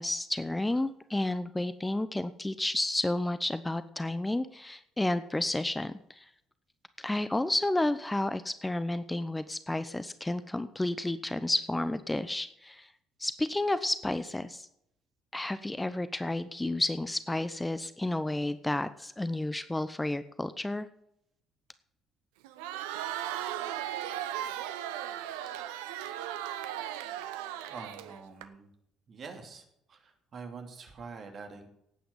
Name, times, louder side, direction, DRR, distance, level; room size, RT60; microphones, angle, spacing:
voice 1, 0.0-6.3 7.0-12.9 13.2-14.7 15.3-20.9, left 1 dB, 10° left, 13 dB, 0.8 m, -31 dB
Crowd, 22.4-28.4, right 12 dB, 75° right, 0.8 m, -37 dB
voice 2, 27.7-28.7 29.1-31.7, right 4 dB, 45° right, 5 dB, 2.8 m, -45 dB
17.5 x 8.8 x 5.4 m, 0.77 s
figure-of-eight pair, 50°, 0 cm